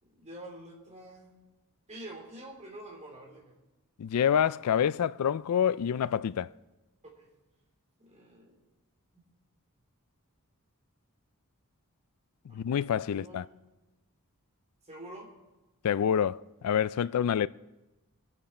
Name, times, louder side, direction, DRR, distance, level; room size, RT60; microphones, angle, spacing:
voice 1, 0.0-1.3 1.9-3.5 7.1-7.3 8.0-8.6 9.1-9.2 12.5-12.6 13.1-13.5 14.8-15.3, right 1 dB, 30° right, 3.1 m, -47 dB
voice 2, 4.0-6.5 12.5-13.4 15.8-17.5, left 8 dB, 85° left, 0.4 m, -27 dB
23.0 x 8.8 x 4.3 m
head